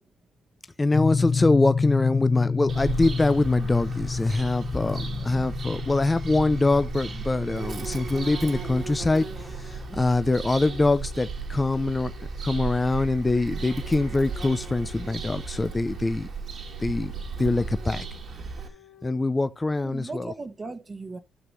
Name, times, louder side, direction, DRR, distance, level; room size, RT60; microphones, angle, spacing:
voice 1, 0.8-9.3 9.6-12.1 12.4-16.3 16.8-17.1 17.4-18.1 19.0-20.3, left 2 dB, 20° left, 0.6 m, -24 dB
sound 1, 0.9-11.1, left 5 dB, 40° left, 1.3 m, -30 dB
Bird vocalization bird call bird song, 2.7-18.7, right 4 dB, 55° right, 2.0 m, -35 dB
voice 2, 5.1-5.5 19.8-21.2, right 3 dB, 30° right, 1.2 m, -38 dB
sound 2, 8.6-8.7 9.6-10.4 10.8-11.4 11.8-12.4 12.8-13.3 13.8-14.3 14.7-15.3 15.7-16.3 16.7-17.2 17.6-18.2 18.6-19.2, left 10 dB, 85° left, 2.5 m, -54 dB
12.5 x 5.9 x 3.2 m
cardioid pair, 90°, 0 cm